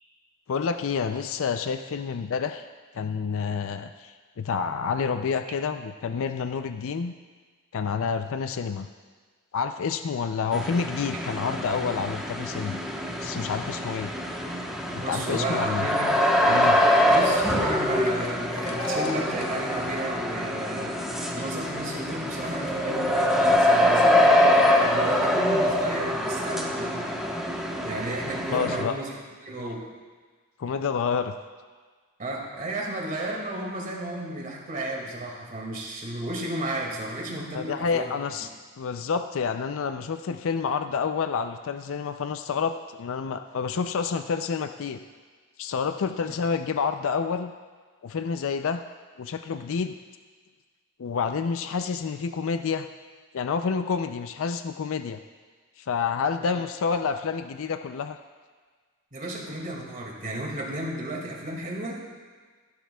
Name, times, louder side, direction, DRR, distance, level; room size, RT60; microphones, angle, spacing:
voice 1, 0.5-2.7 2.9-7.1 7.7-8.9 9.5-12.8 13.2-14.1 14.9-15.8 16.5-16.8 28.5-29.0 30.6-31.3 37.5-38.5 38.8-45.0 45.6-47.5 48.0-48.8 49.2-49.9 51.0-52.9 53.3-55.2 55.8-58.2, left 5 dB, 65° left, 9 dB, 0.4 m, -28 dB
sound 1, 10.5-28.8, left 1 dB, ahead, 1.0 m, -24 dB
voice 2, 15.0-16.3 17.1-21.0 21.3-27.2 27.8-29.9 32.2-38.1 56.4-56.5 59.1-62.0, right 1 dB, 40° right, -1 dB, 2.1 m, -33 dB
sound 2, 15.1-20.1, left 3 dB, 80° left, 1.1 m, -39 dB
16.0 x 11.5 x 2.3 m, 1.5 s
head